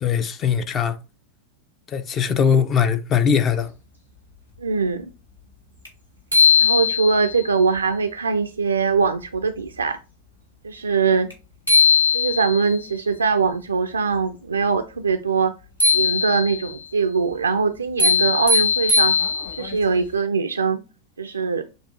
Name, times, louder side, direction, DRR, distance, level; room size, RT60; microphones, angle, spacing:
voice 1, 0.0-1.0 1.9-3.7, left 7 dB, 30° left, 0.4 m, -20 dB
voice 2, 4.6-5.1 6.6-10.0 10.6-11.3 12.1-15.5 15.9-19.1 19.5-20.8 21.2-21.6, right 5 dB, 75° right, 0.3 m, -22 dB
sound 1, 5.9-6.0 6.3-7.4 11.3-11.4 11.7-12.7 15.8-16.7 18.0-19.7, left 5 dB, 85° left, 1.8 m, -19 dB
6.4 x 2.3 x 2.7 m
figure-of-eight pair, 90°, 0 cm